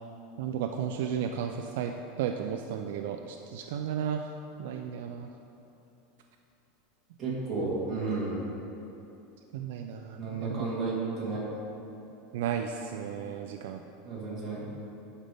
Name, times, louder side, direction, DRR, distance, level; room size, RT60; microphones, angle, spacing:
voice 1, 0.4-1.9 2.2-3.2 3.5-4.2 4.6-5.3 9.5-10.5 12.3-13.8, right 8 dB, 65° right, 4 dB, 0.3 m, -33 dB
voice 2, 7.2-8.5 10.2-11.4 14.1-14.6, right 3 dB, 20° right, -7 dB, 1.8 m, -32 dB
11.5 x 5.2 x 3.5 m, 2.8 s
supercardioid pair, 180°, 0 cm